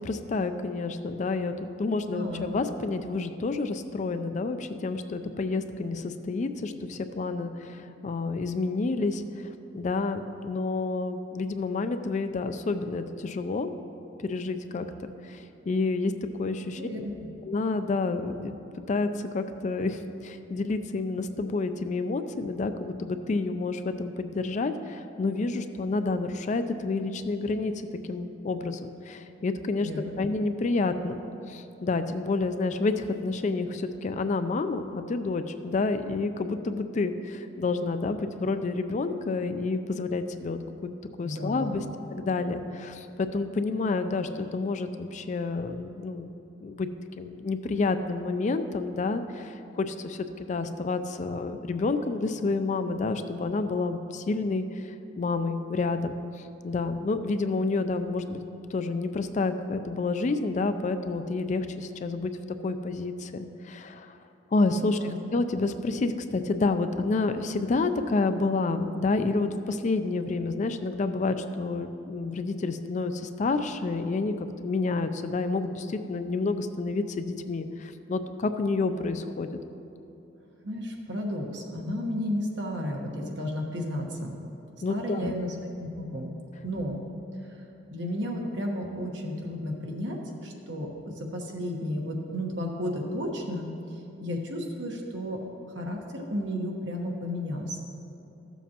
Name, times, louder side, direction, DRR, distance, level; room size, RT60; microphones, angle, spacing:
voice 1, 0.0-9.5 9.7-13.7 14.2-14.9 15.2-16.1 16.4-16.8 17.4-18.5 18.9-27.7 28.0-31.2 31.5-40.9 41.2-41.8 42.1-46.3 46.6-46.9 47.2-54.6 55.2-56.2 56.6-58.4 58.7-62.3 62.6-64.1 64.5-79.5 84.8-85.3, left 3 dB, 40° left, 9 dB, 0.4 m, -29 dB
voice 2, 2.1-2.6 16.8-17.3 29.8-30.1 41.2-41.9 64.9-65.2 80.6-84.4 84.9-86.3 86.6-87.0 87.9-93.7 94.2-95.4 95.7-97.8, equal, 70° right, 0 dB, 1.2 m, -33 dB
14.0 x 7.2 x 2.9 m, 2.9 s
head